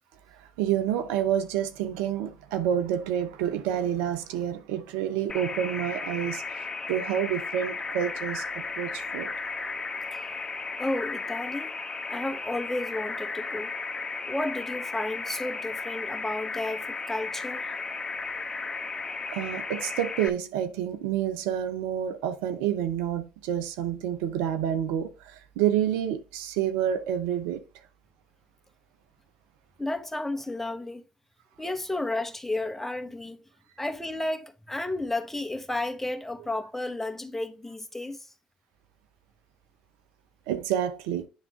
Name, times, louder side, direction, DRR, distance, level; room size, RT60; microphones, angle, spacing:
voice 1, 0.6-9.3 19.3-25.1 25.6-27.6 40.5-41.2, right 10 dB, 80° right, 0.7 m, -28 dB
sound 1, 5.3-20.3, left 4 dB, 25° left, 1.3 m, -35 dB
voice 2, 10.8-11.7 12.1-13.7 14.3-17.6 29.8-31.0 31.6-33.4 33.8-38.2, left 2 dB, 10° left, 1.2 m, -32 dB
9.7 x 3.6 x 3.6 m
hypercardioid pair, 55°, 3 cm